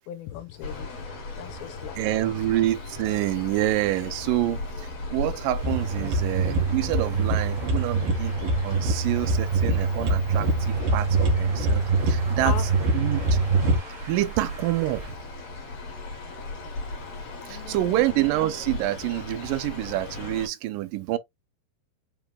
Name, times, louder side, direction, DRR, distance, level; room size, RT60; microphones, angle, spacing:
voice 1, 0.1-2.0 12.4-12.7 17.5-18.2, left 11 dB, 85° left, 2.5 m, -38 dB
sound 1, 0.6-20.5, left 3 dB, 55° left, 2.3 m, -37 dB
voice 2, 2.0-12.5 12.9-13.2 14.1-15.0 17.5-21.2, right 15 dB, 80° right, 2.0 m, -27 dB
Traffic noise roadway noise, 5.6-15.1, right 4 dB, 45° right, 1.5 m, -44 dB
sound 2, 5.6-13.8, right 3 dB, 60° right, 2.9 m, -24 dB
5.7 x 3.4 x 2.3 m
omnidirectional pair, 4.4 m